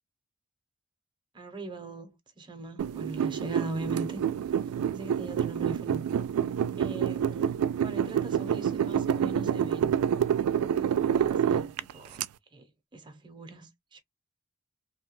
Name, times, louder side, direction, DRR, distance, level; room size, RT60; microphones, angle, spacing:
voice 1, 1.3-4.2 4.9-6.1 6.8-9.9 10.9-12.2 12.5-12.6 12.9-14.0, right 2 dB, 20° right, 0.7 m, -41 dB
sound 1, 2.8-12.2, right 8 dB, 90° right, 0.3 m, -28 dB
2.8 x 2.2 x 2.9 m
head